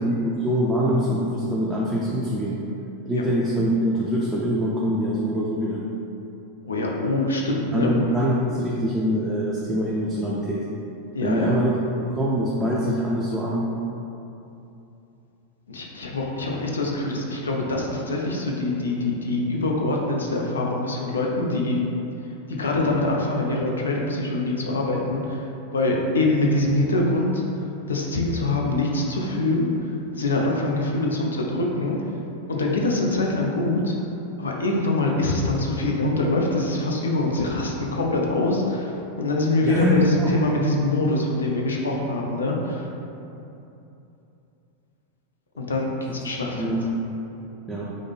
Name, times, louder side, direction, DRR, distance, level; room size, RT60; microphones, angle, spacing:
voice 1, 0.0-2.6 3.1-5.8 7.7-10.6 11.2-11.8 12.1-13.7 39.6-40.3 46.5-46.9 47.7-47.9, equal, 5° right, -7 dB, 0.5 m, -24 dB
voice 2, 6.6-7.9 11.1-11.6 15.7-21.8 22.6-25.5 25.7-27.4 27.9-29.7 30.2-32.0 32.5-33.9 34.4-42.8 45.6-46.8, left 2 dB, 70° left, -1 dB, 0.5 m, -24 dB
4.8 x 2.1 x 3.4 m, 2.8 s
figure-of-eight pair, 90°, 0 cm